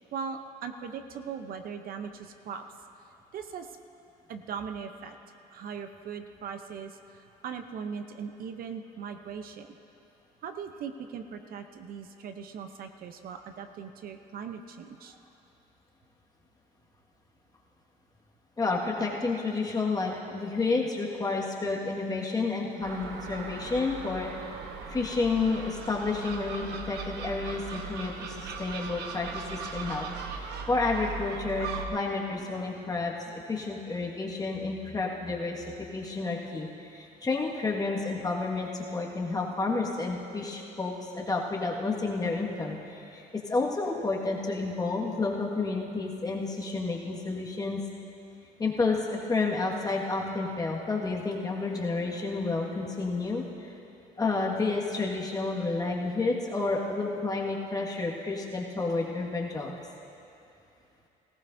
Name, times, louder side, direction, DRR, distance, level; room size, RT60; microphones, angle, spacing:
voice 1, 0.1-2.6 3.3-3.8 4.3-5.2 5.5-9.7 10.4-15.2, right 6 dB, 60° right, 7 dB, 0.7 m, -39 dB
voice 2, 18.6-24.5 24.9-35.7 35.9-47.8 48.6-53.7 54.2-59.7, left 3 dB, 20° left, -2 dB, 1.7 m, -30 dB
Gull seagull, 22.8-31.9, right 5 dB, 80° right, 1.0 m, -39 dB
19.0 x 15.0 x 2.7 m, 2.7 s
cardioid pair, 110°, 17 cm